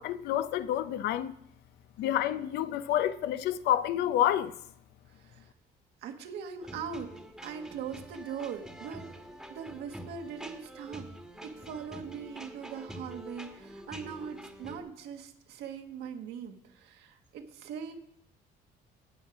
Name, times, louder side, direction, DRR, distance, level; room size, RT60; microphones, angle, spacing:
voice 1, 0.0-1.3 2.0-4.5, left 11 dB, 80° left, 0.6 m, -28 dB
voice 2, 5.1-5.5 6.0-9.1 9.5-11.1 11.4-17.9, right 7 dB, 80° right, 1.5 m, -41 dB
sound 1, 6.6-14.8, right 1 dB, ahead, 1.3 m, -46 dB
16.5 x 5.6 x 4.9 m
cardioid pair, 110°, 17 cm